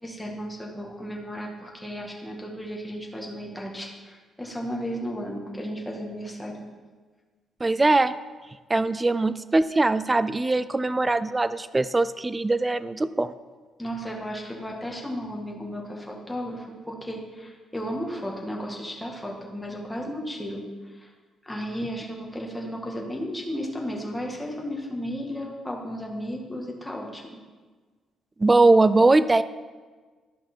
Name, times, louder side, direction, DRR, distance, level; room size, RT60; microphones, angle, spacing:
voice 1, 0.0-6.6 13.8-21.1 21.4-27.4, equal, 5° left, -1 dB, 1.9 m, -34 dB
voice 2, 7.6-8.1 8.7-13.3 28.4-29.4, right 2 dB, 20° right, 14 dB, 0.4 m, -21 dB
12.5 x 5.2 x 4.5 m, 1.4 s
cardioid pair, 90°, 0 cm